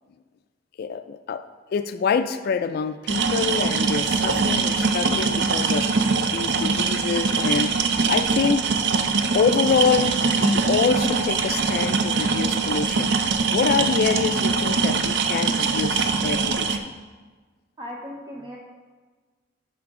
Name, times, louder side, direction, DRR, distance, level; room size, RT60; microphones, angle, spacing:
voice 1, 0.8-5.9 6.3-7.8 8.1-8.7 9.3-13.1 13.5-16.9, left 5 dB, 55° left, 11 dB, 0.3 m, -26 dB
sound 1, 3.1-16.8, right 4 dB, 65° right, 0.5 m, -23 dB
voice 2, 17.8-18.6, equal, 25° right, -2 dB, 0.7 m, -37 dB
10.5 x 5.0 x 3.7 m, 1.4 s
head